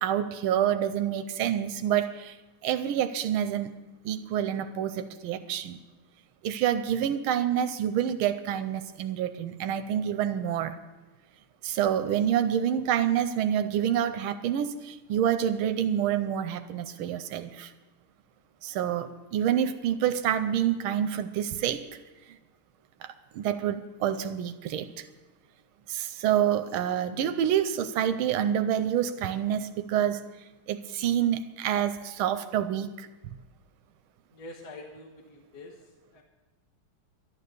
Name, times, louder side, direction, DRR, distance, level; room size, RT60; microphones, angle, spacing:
voice 1, 0.0-2.4 2.6-3.7 4.0-5.8 6.4-10.8 11.6-17.7 18.6-21.8 23.0-23.1 23.3-25.0 25.9-30.2 30.7-33.1, right 10 dB, 90° right, 10 dB, 1.5 m, -27 dB
voice 2, 34.3-35.8 36.1-36.2, left 2 dB, 55° left, 3 dB, 1.7 m, -45 dB
12.0 x 11.0 x 6.7 m, 1.2 s
omnidirectional pair, 2.2 m